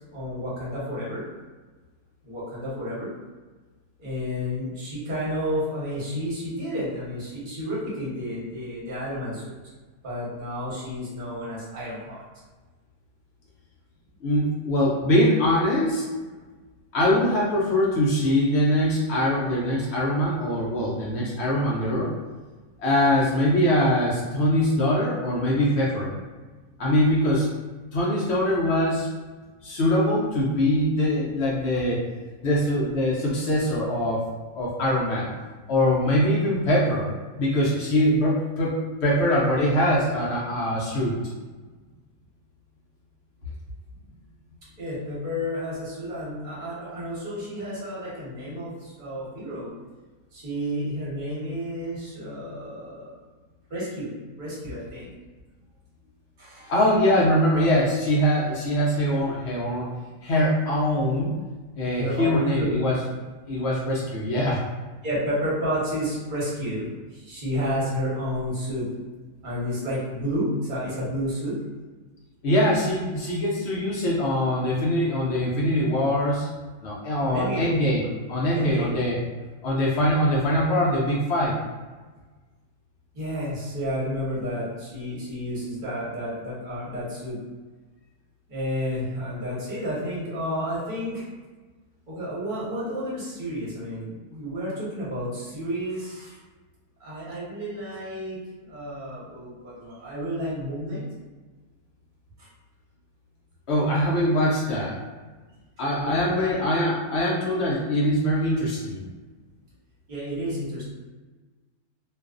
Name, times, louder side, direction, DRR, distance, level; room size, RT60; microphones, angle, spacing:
voice 1, 0.1-1.2 2.2-3.1 4.0-9.5 10.0-12.2 44.8-49.7 50.3-53.1 53.7-55.1 56.4-56.7 61.9-62.7 65.0-68.9 69.4-71.5 77.2-77.7 78.5-78.9 83.1-87.4 88.5-91.3 92.1-96.4 97.0-101.0 102.4-102.5 105.9-106.6 110.1-110.8, equal, 40° right, -8 dB, 0.9 m, -31 dB
voice 2, 14.2-16.0 16.9-22.1 22.8-26.1 26.8-27.5 27.9-29.1 29.6-32.0 32.4-34.2 34.6-35.3 35.7-37.1 37.4-41.2 56.7-59.9 60.2-61.4 61.8-63.0 63.5-64.6 72.4-76.5 76.8-78.0 78.3-79.2 79.6-81.6 103.7-105.0 105.8-109.1, left 1 dB, 70° left, -5 dB, 0.6 m, -23 dB
2.4 x 2.3 x 2.4 m, 1.3 s
omnidirectional pair, 1.6 m